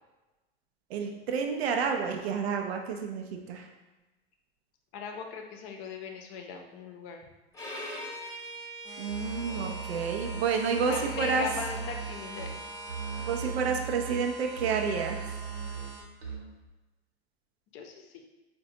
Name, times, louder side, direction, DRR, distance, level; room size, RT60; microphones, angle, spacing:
voice 1, 0.9-3.7 9.0-11.4 13.2-15.4, right 5 dB, 85° right, 3 dB, 0.5 m, -30 dB
voice 2, 4.9-7.3 10.7-12.6 17.7-18.2, left 6 dB, 50° left, 3 dB, 0.6 m, -39 dB
Bowed string instrument, 7.5-13.5, equal, 10° left, 0.9 m, -43 dB
sound 1, 8.8-16.0, right 4 dB, 15° right, 0.7 m, -46 dB
Musical instrument, 9.1-16.7, right 6 dB, 65° right, 1.0 m, -39 dB
4.0 x 2.2 x 2.7 m, 1.1 s
hypercardioid pair, 90°, 31 cm